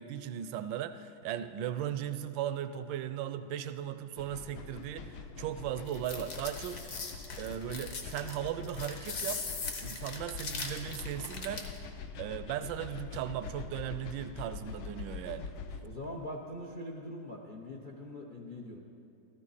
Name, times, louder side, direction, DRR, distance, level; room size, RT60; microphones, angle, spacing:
voice 1, 0.0-6.8 7.4-9.4 9.8-11.7 12.2-15.5, right 10 dB, 75° right, 11 dB, 1.2 m, -37 dB
sound 1, 4.2-15.8, left 5 dB, 85° left, 1.5 m, -44 dB
sound 2, 5.9-11.8, left 4 dB, 50° left, 1.5 m, -40 dB
voice 2, 15.8-18.8, left 1 dB, 70° left, -1 dB, 0.4 m, -42 dB
14.0 x 13.5 x 4.1 m, 2.6 s
omnidirectional pair, 2.2 m